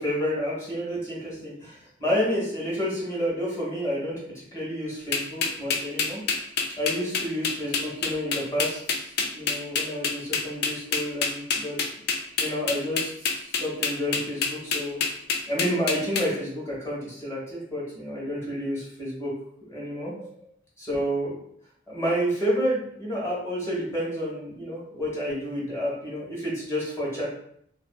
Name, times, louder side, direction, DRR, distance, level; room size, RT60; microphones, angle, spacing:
voice 1, 0.0-6.2 6.8-11.8 12.4-15.0 15.5-19.3 19.6-20.5 20.8-21.4 21.9-27.3, equal, 15° left, -5 dB, 1.1 m, -30 dB
sound 1, 5.1-16.3, left 5 dB, 55° left, 0.3 m, -26 dB
2.6 x 2.6 x 2.2 m, 0.68 s
head